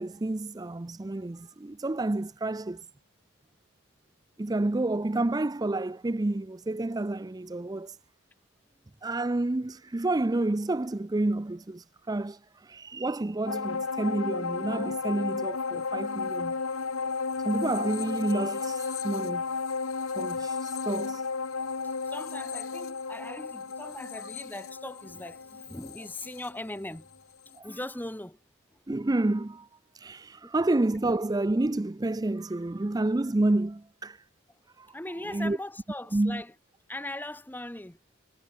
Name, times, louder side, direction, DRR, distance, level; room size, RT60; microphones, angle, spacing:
voice 1, 0.0-2.9 4.4-8.0 9.0-16.5 17.4-19.4 20.2-21.3 27.6-27.7 28.9-29.7 29.9-34.2 34.8-34.9 35.2-35.6 36.1-36.4, right 2 dB, 20° right, 0.4 m, -29 dB
sound 1, 13.5-27.1 27.5-27.6, left 4 dB, 75° left, 1.2 m, -33 dB
voice 2, 22.0-27.1 27.4-28.4 30.4-30.5 34.9-36.5 36.9-38.0, left 1 dB, 10° left, 1.1 m, -40 dB
head